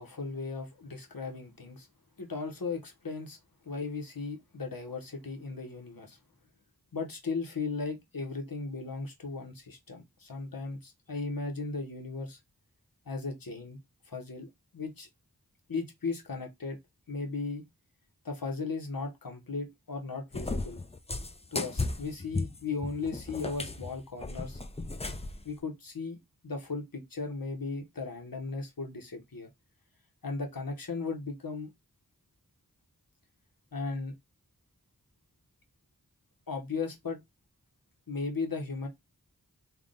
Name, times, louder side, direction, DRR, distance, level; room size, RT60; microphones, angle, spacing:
voice 1, 0.0-1.9 2.2-3.4 3.6-6.2 6.9-12.4 13.1-13.8 14.0-15.1 15.7-16.8 17.1-17.6 18.2-20.8 21.5-24.6 25.4-26.2 26.4-29.5 30.2-31.7 33.7-34.1 36.5-37.2 38.1-38.9, left 4 dB, 75° left, 1.1 m, -36 dB
Cat, 20.3-25.4, left 3 dB, 20° left, 0.4 m, -35 dB
3.5 x 2.2 x 3.7 m
wide cardioid pair, 40°, 35 cm